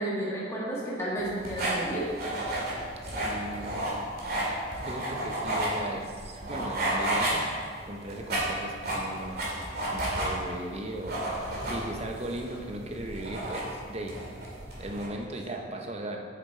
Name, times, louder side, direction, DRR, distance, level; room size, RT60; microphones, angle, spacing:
voice 1, 0.0-2.1, right 1 dB, 15° left, -6 dB, 1.4 m, -32 dB
sound 1, 1.2-15.1, right 1 dB, 55° right, 2.3 m, -32 dB
voice 2, 3.0-3.9 4.3-4.5 4.8-7.5 7.8-9.5 9.9-14.2 14.8-16.2, right 1 dB, 35° right, 2 dB, 0.8 m, -37 dB
7.2 x 7.2 x 4.5 m, 2.1 s
head